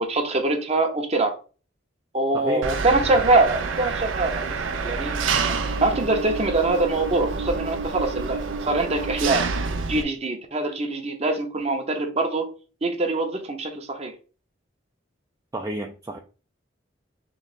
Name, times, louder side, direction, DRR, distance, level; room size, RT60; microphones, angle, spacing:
voice 1, 0.0-1.4 2.1-5.6 5.8-9.5 9.9-12.5 12.8-14.1, right 2 dB, 35° right, 0.8 m, -24 dB
voice 2, 2.3-2.7 15.5-16.2, right 1 dB, 15° right, 0.4 m, -31 dB
Engine, 2.6-10.0, right 4 dB, 85° right, 0.6 m, -28 dB
3.5 x 3.3 x 4.0 m
head